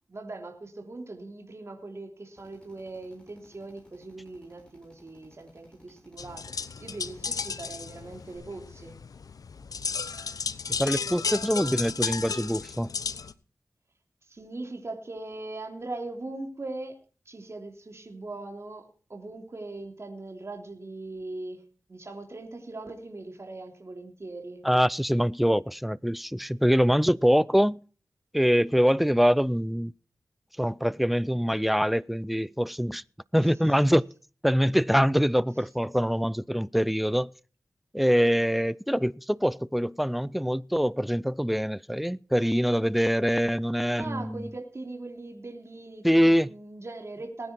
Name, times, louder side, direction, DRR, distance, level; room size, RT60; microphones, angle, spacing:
voice 1, 0.1-8.9 14.3-16.9 17.2-21.6 21.9-24.6 33.4-33.7 44.0-46.1 46.4-47.5, right 2 dB, 50° right, 3.2 m, -40 dB
Drill, 2.4-8.4, equal, 15° left, 7.3 m, -58 dB
sound 1, 6.2-13.3, left 5 dB, 80° left, 0.8 m, -34 dB
voice 2, 10.8-12.9 24.6-27.8 28.3-29.9 30.6-33.0 33.3-34.0 34.4-37.3 37.9-44.5 46.0-46.5, equal, ahead, 0.5 m, -24 dB
19.5 x 9.8 x 4.4 m
wide cardioid pair, 60°, 6 cm